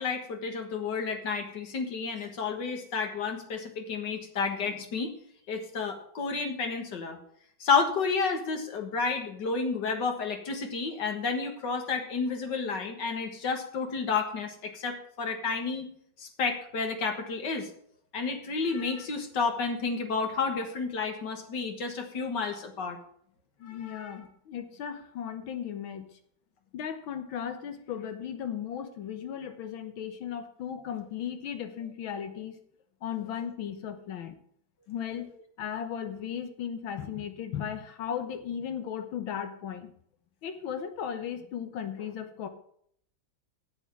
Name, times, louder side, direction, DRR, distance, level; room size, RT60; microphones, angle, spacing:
voice 1, 0.0-5.1 5.5-7.2 7.6-15.9 16.2-17.7 18.1-23.0 23.6-24.2, left 4 dB, 65° left, 5 dB, 2.1 m, -31 dB
voice 2, 23.6-26.1 26.7-32.6 33.0-34.3 34.9-35.3 35.6-39.9 40.4-42.5, left 8 dB, 85° left, 8 dB, 1.9 m, -36 dB
8.3 x 8.0 x 7.1 m, 0.66 s
omnidirectional pair, 2.1 m